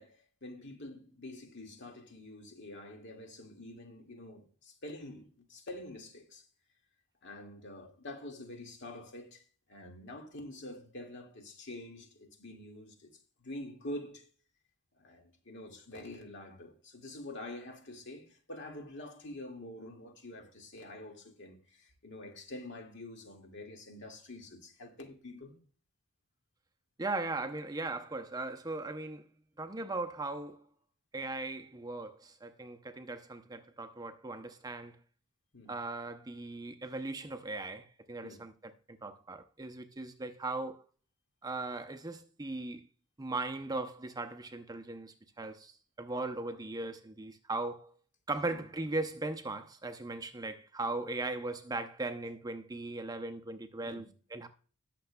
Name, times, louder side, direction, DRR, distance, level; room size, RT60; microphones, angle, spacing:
voice 1, 0.0-6.5 7.2-9.4 9.7-13.1 13.4-14.3 15.0-25.6 35.5-35.7 38.2-38.4 48.5-48.6 53.8-54.1, left 1 dB, 60° left, 2.0 m, -46 dB
voice 2, 27.0-29.3 29.6-30.6 31.1-35.0 35.7-40.8 41.4-42.9 43.2-48.0 48.3-54.5, right 2 dB, 20° right, 0.6 m, -38 dB
19.5 x 6.8 x 2.3 m
head